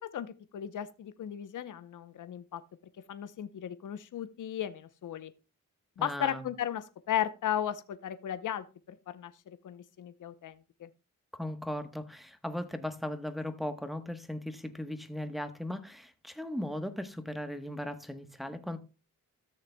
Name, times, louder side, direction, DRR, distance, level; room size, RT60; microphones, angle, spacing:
voice 1, 0.0-2.6 3.1-5.3 6.0-10.9, left 10 dB, 60° left, 0.8 m, -36 dB
voice 2, 6.0-6.4 11.3-18.8, left 1 dB, ahead, 1.1 m, -37 dB
14.0 x 6.5 x 2.2 m
cardioid pair, 70°, 34 cm